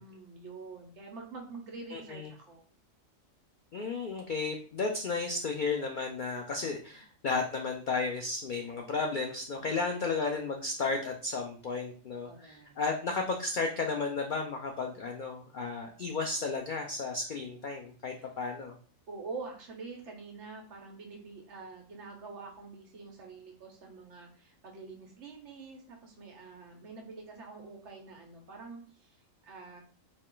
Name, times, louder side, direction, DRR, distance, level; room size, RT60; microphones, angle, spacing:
voice 1, 0.0-2.7 6.9-7.0 9.6-10.1 12.2-12.7 18.2-18.3 19.1-29.8, right 4 dB, 60° right, 2 dB, 1.1 m, -46 dB
voice 2, 1.9-2.3 3.7-18.8, left 4 dB, 75° left, 3 dB, 0.4 m, -33 dB
4.3 x 2.4 x 3.7 m, 0.43 s
omnidirectional pair, 1.5 m